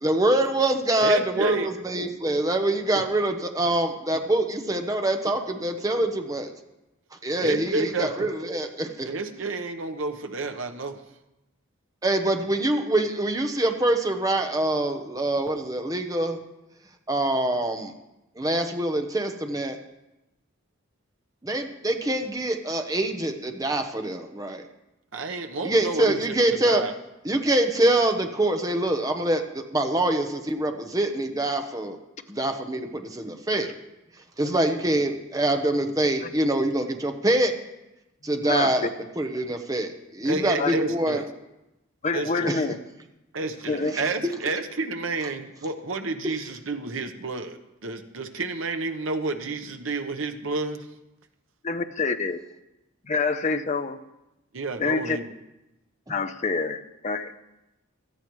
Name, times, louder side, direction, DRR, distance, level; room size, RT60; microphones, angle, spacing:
voice 1, 0.0-6.5 7.2-9.1 12.0-16.4 17.1-17.9 18.4-19.8 21.4-24.6 25.6-26.8 27.2-32.0 32.3-33.7 34.4-37.5 38.2-38.9 39.2-41.2 42.5-42.6 43.9-44.0, right 1 dB, 15° right, 5 dB, 0.9 m, -25 dB
voice 2, 1.0-1.7 2.9-3.0 7.4-8.3 9.0-11.0 25.1-26.4 26.6-26.9 40.2-41.3 42.1-42.5 43.3-50.9 54.5-55.2, right 3 dB, 75° right, 7 dB, 1.1 m, -30 dB
voice 3, 38.2-38.9 40.6-40.8 42.0-42.7 43.7-44.0 51.6-52.4 53.0-54.0 54.8-55.2 56.1-57.4, left 4 dB, 35° left, 9 dB, 0.6 m, -27 dB
17.0 x 13.0 x 3.2 m, 0.94 s
head